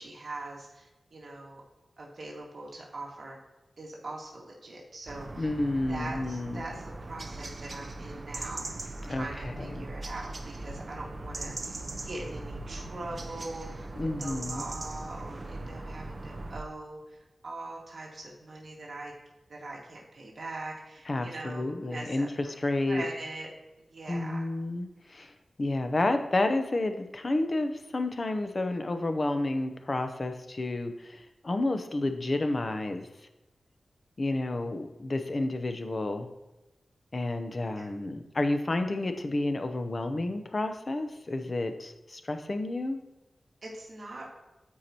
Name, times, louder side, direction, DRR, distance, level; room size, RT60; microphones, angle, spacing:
voice 1, 0.0-1.6 2.0-3.4 3.8-5.5 5.9-13.9 14.2-19.1 19.5-22.6 22.9-23.5 23.9-24.5 37.7-37.9 43.6-44.3, right 2 dB, 60° right, -2 dB, 1.9 m, -42 dB
sound 1, 5.1-16.6, right 2 dB, 40° right, 0.6 m, -40 dB
voice 2, 5.4-6.6 9.0-9.9 14.0-14.6 21.1-23.0 24.1-25.3 25.6-33.1 34.2-36.3 37.1-43.0, left 2 dB, 40° left, 7 dB, 0.7 m, -30 dB
14.0 x 4.7 x 2.9 m, 1.0 s
wide cardioid pair, 110°, 0 cm